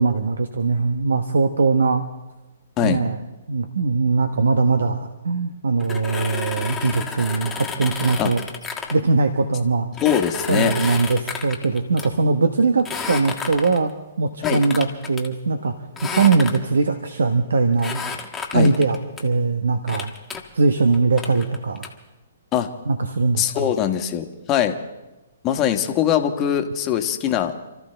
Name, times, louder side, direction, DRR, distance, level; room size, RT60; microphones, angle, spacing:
voice 1, 0.0-2.0 2.8-3.2 3.5-8.4 8.9-9.9 10.5-15.7 16.1-18.0 18.5-20.1 20.5-21.9 22.9-23.8, right 4 dB, 85° right, 8 dB, 1.1 m, -21 dB
sound 1, 5.8-9.0 10.0-12.1 12.8-13.9 14.4-15.3 16.0-16.8 17.8-19.2 19.9-20.4 20.9-21.9, left 6 dB, 10° left, 1.6 m, -31 dB
voice 2, 10.0-10.7 14.4-14.6 18.5-18.7 22.5-22.7 23.4-24.8 25.4-27.5, left 10 dB, 25° left, 6 dB, 1.4 m, -22 dB
28.5 x 13.5 x 3.4 m, 1.1 s
hypercardioid pair, 145°, 0 cm